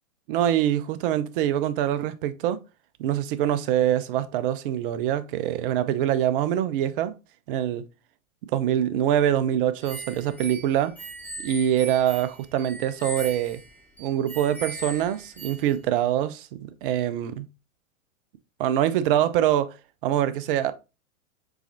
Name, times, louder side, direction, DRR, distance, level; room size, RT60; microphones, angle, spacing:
voice 1, 0.3-2.6 3.0-7.1 7.5-7.8 8.5-11.0 11.4-13.6 14.0-17.5 18.6-19.8 20.0-20.7, right 11 dB, 40° right, 0.5 m, -24 dB
sound 1, 9.8-15.8, right 3 dB, 5° left, 1.0 m, -39 dB
4.7 x 4.1 x 2.6 m
hypercardioid pair, 110°, 42 cm